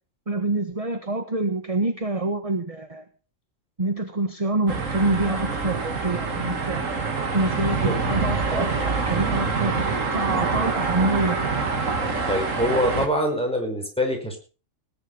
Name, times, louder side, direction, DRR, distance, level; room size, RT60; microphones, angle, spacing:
voice 1, 0.3-3.0 3.8-6.9 7.3-11.4, right 2 dB, 30° right, 8 dB, 1.5 m, -26 dB
sound 1, 4.7-13.1, right 4 dB, 85° right, 2.4 m, -26 dB
voice 2, 12.3-14.4, equal, 5° left, 2 dB, 5.3 m, -24 dB
18.5 x 10.5 x 5.4 m, 0.36 s
omnidirectional pair, 1.3 m